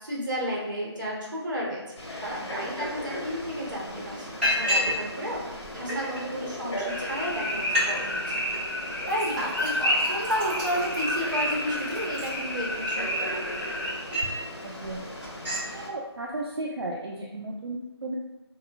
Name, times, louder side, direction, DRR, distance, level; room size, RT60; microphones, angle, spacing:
voice 1, 0.0-8.4 8.7-13.4, equal, 45° right, -4 dB, 0.8 m, -32 dB
Frog, 2.0-15.9, left 1 dB, 75° left, 0.9 m, -38 dB
Liquid, 3.9-4.0 4.4-5.0 5.3-6.2 6.9-7.0 7.3-7.4 7.6-7.9 8.2-8.6 9.1-12.9 13.4-14.4 14.8-15.0 15.2-15.7, left 1 dB, 25° right, 1.0 m, -31 dB
sound 1, 6.9-13.9, equal, 45° left, 0.7 m, -30 dB
voice 2, 14.6-15.1 15.7-18.1, right 2 dB, 65° right, -2 dB, 0.4 m, -34 dB
2.9 x 2.2 x 2.3 m, 1.0 s
figure-of-eight pair, 180°, 14 cm